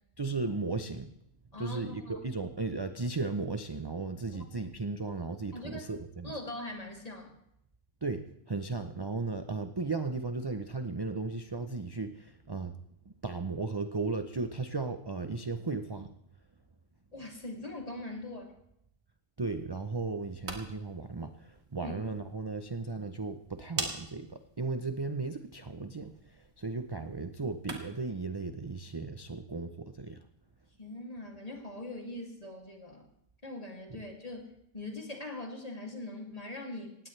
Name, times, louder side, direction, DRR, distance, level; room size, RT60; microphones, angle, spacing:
voice 1, 0.2-1.1 1.6-6.4 8.0-12.8 13.1-16.2 19.4-30.2 33.9-34.0, right 3 dB, 25° right, 9 dB, 0.6 m, -36 dB
voice 2, 1.5-2.2 5.5-5.9 6.2-7.3 17.1-18.6 21.8-22.0 27.0-27.1 30.8-33.0 33.4-37.0, left 2 dB, 30° left, 1 dB, 2.8 m, -42 dB
sound 1, 20.1-28.1, right 3 dB, 65° right, 2.3 m, -45 dB
19.0 x 16.5 x 3.3 m, 0.77 s
omnidirectional pair, 1.3 m